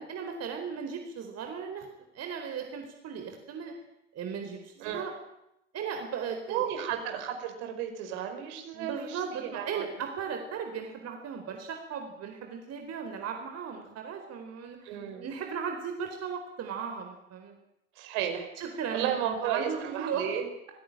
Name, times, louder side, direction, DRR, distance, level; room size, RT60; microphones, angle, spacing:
voice 1, 0.0-1.9 2.1-3.7 4.1-5.1 5.7-6.7 8.7-15.0 15.2-17.6 18.6-20.3, right 6 dB, 45° right, 4 dB, 4.2 m, -36 dB
voice 2, 6.5-9.9 14.8-15.3 18.0-18.5 18.9-20.5, right 9 dB, 65° right, 5 dB, 5.3 m, -33 dB
27.5 x 17.0 x 9.0 m, 0.85 s
figure-of-eight pair, 65°, 36 cm